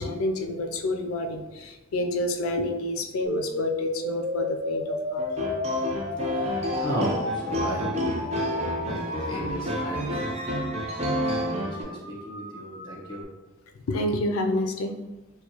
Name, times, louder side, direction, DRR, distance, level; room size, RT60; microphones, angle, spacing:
voice 1, 0.0-5.3 7.8-8.7 9.3-9.5 13.9-14.9, left 1 dB, 90° left, 5 dB, 0.4 m, -29 dB
sound 1, 3.2-13.2, left 2 dB, 60° right, 0.8 m, -33 dB
sound 2, 5.2-11.8, equal, 30° right, 0.5 m, -30 dB
voice 2, 6.2-10.3 11.3-13.3, equal, 20° left, -5 dB, 0.9 m, -35 dB
4.4 x 2.2 x 2.8 m, 1.1 s
head